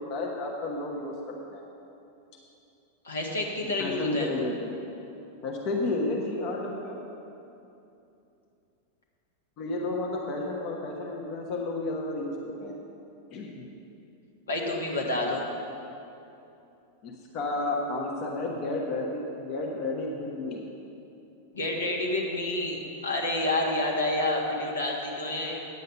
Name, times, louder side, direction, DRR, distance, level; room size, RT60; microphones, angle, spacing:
voice 1, 0.0-1.6 3.8-4.7 5.4-7.0 9.6-12.8 13.3-13.7 17.0-20.6, left 2 dB, 40° left, -1 dB, 1.1 m, -32 dB
voice 2, 3.0-4.3 14.5-15.4 21.5-25.6, left 2 dB, 70° left, -1 dB, 1.5 m, -29 dB
9.5 x 8.0 x 5.6 m, 2.8 s
figure-of-eight pair, 90°, 0 cm